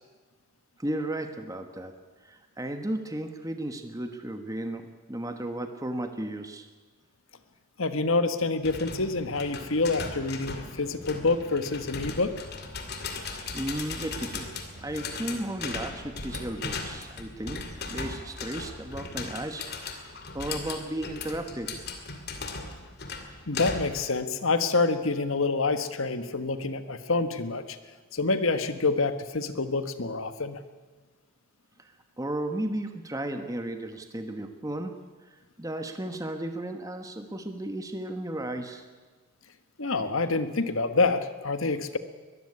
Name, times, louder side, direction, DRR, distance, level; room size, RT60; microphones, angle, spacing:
voice 1, 0.8-1.9 2.2-6.7 13.2-14.5 14.8-20.1 20.3-21.9 31.8-34.9 35.2-38.9, right 1 dB, 15° right, 6 dB, 1.3 m, -34 dB
voice 2, 7.8-12.3 23.5-27.8 28.1-30.6 39.8-42.0, left 3 dB, 70° left, 10 dB, 1.5 m, -27 dB
sound 1, 8.6-24.1, left 4 dB, 45° left, 2.4 m, -38 dB
Mechanical fan, 8.7-17.2, right 1 dB, 10° left, 5.2 m, -51 dB
22.0 x 14.5 x 9.8 m, 1.3 s
head